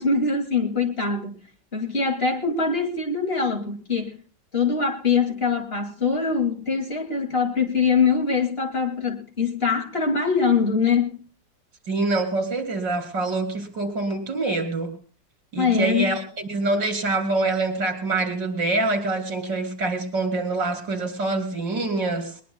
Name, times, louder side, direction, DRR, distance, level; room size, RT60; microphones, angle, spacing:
voice 1, 0.0-1.3 1.7-4.1 4.5-11.2 15.6-16.2, left 5 dB, 35° left, 2.4 m, -23 dB
voice 2, 11.9-14.9 15.5-16.2 16.5-22.3, right 2 dB, 85° right, 3.7 m, -25 dB
21.5 x 20.5 x 2.2 m
omnidirectional pair, 1.9 m